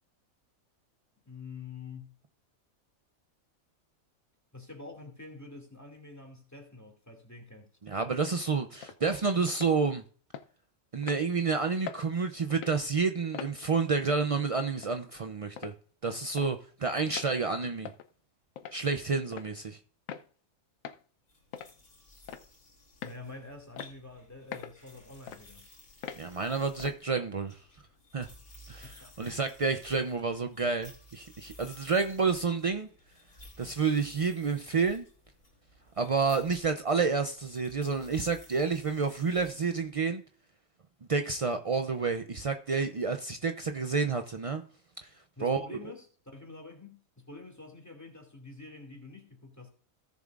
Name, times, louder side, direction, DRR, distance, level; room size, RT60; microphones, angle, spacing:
voice 1, 1.3-2.2 4.5-7.7 23.0-25.7 28.7-29.3 45.4-46.1 46.3-49.7, left 3 dB, 10° left, 2.3 m, -47 dB
voice 2, 7.8-10.0 10.9-15.7 16.0-17.9 18.7-19.8 26.2-27.6 28.1-28.3 28.7-32.9 33.6-35.0 36.0-40.2 41.1-44.6 45.4-45.8, right 4 dB, 60° right, 0.3 m, -29 dB
sound 1, 8.8-9.0 9.5-9.7 10.3-10.5 11.0-11.2 11.9-12.0 12.5-12.8 13.3-13.5 14.1-14.3 14.8-14.9 15.6-15.8 16.4-16.5 17.1-17.3 17.8-18.1 18.6-18.8 19.3-19.5 20.1-20.3 20.8-21.0 21.5-21.7 22.3-22.5 23.0-23.2 23.8-23.9 24.5-24.8 25.3-25.4 26.0-26.2 26.8-27.0, left 8 dB, 75° left, 1.1 m, -42 dB
sound 2, 21.2-40.1, left 1 dB, 90° left, 3.5 m, -56 dB
17.0 x 7.1 x 2.4 m
omnidirectional pair, 1.5 m